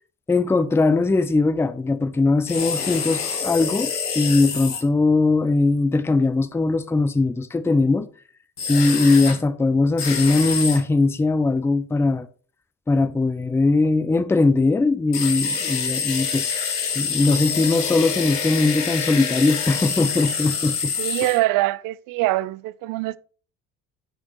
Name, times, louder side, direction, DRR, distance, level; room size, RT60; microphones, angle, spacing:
voice 1, 0.3-8.1 8.7-12.3 12.9-16.5 17.0-20.9, left 3 dB, 5° left, 0.5 m, -20 dB
sound 1, 2.5-4.8 8.6-9.4 10.0-10.8 15.1-21.4, left 6 dB, 85° left, 0.9 m, -26 dB
voice 2, 21.0-23.2, right 17 dB, 50° right, 0.5 m, -23 dB
12.0 x 4.9 x 3.1 m
figure-of-eight pair, 45°, 45 cm